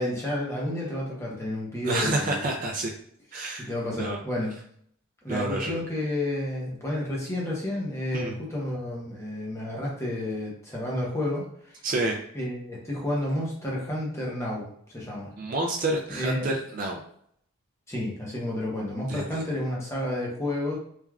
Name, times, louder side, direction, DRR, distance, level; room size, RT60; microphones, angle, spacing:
voice 1, 0.0-2.5 3.6-4.5 5.2-11.8 12.3-15.3 16.1-16.5 17.9-20.8, left 1 dB, 15° left, -4 dB, 0.7 m, -31 dB
voice 2, 1.8-2.9 3.3-3.7 4.0-4.2 5.3-5.8 8.1-8.4 11.8-12.2 15.4-17.0 19.1-19.2, right 2 dB, 40° right, 1 dB, 0.3 m, -28 dB
3.2 x 2.4 x 2.3 m, 0.66 s
head